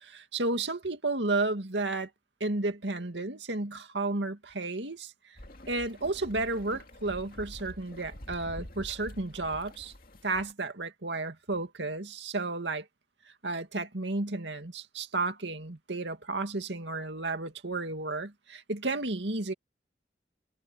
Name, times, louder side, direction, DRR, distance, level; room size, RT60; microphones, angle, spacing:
voice 1, 0.0-2.1 2.4-5.1 5.7-9.9 10.2-12.9 13.4-19.5, right 2 dB, 85° right, 2.3 m, -32 dB
sound 1, 5.4-10.5, left 1 dB, 50° left, 2.4 m, -47 dB
head